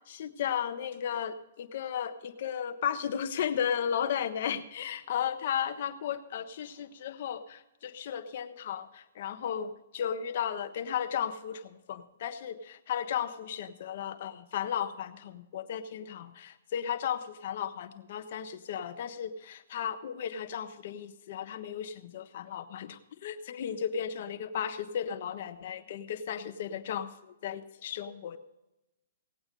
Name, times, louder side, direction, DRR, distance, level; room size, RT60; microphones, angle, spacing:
voice 1, 0.1-28.4, left 8 dB, 55° left, 8 dB, 1.3 m, -35 dB
18.0 x 8.8 x 5.4 m, 0.92 s
hypercardioid pair, 140°, 0 cm